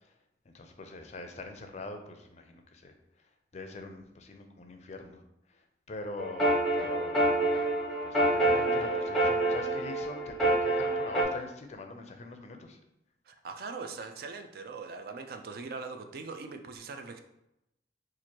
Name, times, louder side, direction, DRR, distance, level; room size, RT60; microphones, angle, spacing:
voice 1, 0.5-2.9 3.5-5.2 5.9-7.8 8.0-8.2 8.4-12.8, left 2 dB, 40° left, 5 dB, 0.4 m, -43 dB
sound 1, 6.2-11.2, right 1 dB, ahead, 0.7 m, -27 dB
voice 2, 13.3-17.2, right 4 dB, 55° right, 6 dB, 0.3 m, -41 dB
2.9 x 2.5 x 4.3 m, 0.85 s
head